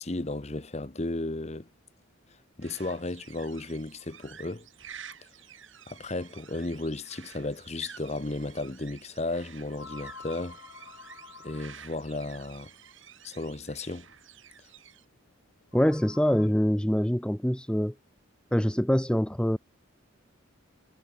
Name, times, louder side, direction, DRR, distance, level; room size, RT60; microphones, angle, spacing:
voice 1, 0.0-1.7 2.6-4.7 5.9-10.6 11.4-12.7 13.2-14.1, left 2 dB, 30° left, 1.0 m, -34 dB
sound 1, 2.6-15.0, right 8 dB, 70° right, 7.4 m, -50 dB
sound 2, 7.9-8.0 9.7-12.1 13.9-14.0 15.6-16.5, left 4 dB, 85° left, 5.8 m, -47 dB
voice 2, 15.7-17.9 18.5-19.6, equal, 5° left, 0.6 m, -24 dB
head